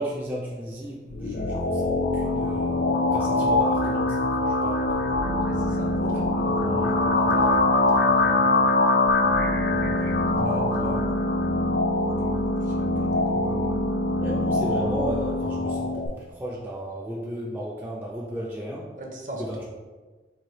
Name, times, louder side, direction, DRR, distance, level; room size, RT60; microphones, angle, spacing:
voice 1, 0.0-2.7 3.1-5.0 6.0-6.2 14.2-18.9 19.5-19.6, right 1 dB, 10° right, -4 dB, 0.3 m, -34 dB
sound 1, 1.1-16.1, left 3 dB, 65° left, 0.4 m, -24 dB
sound 2, 5.2-14.9, right 5 dB, 85° right, 0.4 m, -31 dB
voice 2, 5.5-5.9 6.3-8.7 9.7-11.1 12.0-13.8 19.0-19.6, equal, 45° right, 0 dB, 0.6 m, -39 dB
3.2 x 2.6 x 3.9 m, 1.3 s
head